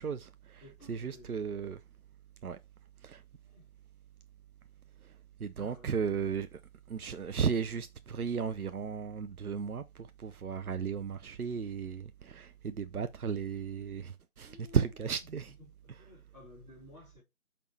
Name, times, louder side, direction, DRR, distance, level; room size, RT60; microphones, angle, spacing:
voice 1, 0.0-0.6 0.9-1.8 2.4-2.6 3.0-3.2 5.4-6.6 6.9-15.5, right 6 dB, 80° right, 0.6 m, -35 dB
voice 2, 0.6-1.4 3.4-3.7 5.6-5.9 14.4-15.1 15.8-17.2, left 2 dB, 5° left, 3.2 m, -55 dB
5.9 x 5.2 x 3.2 m
figure-of-eight pair, 165°, 44 cm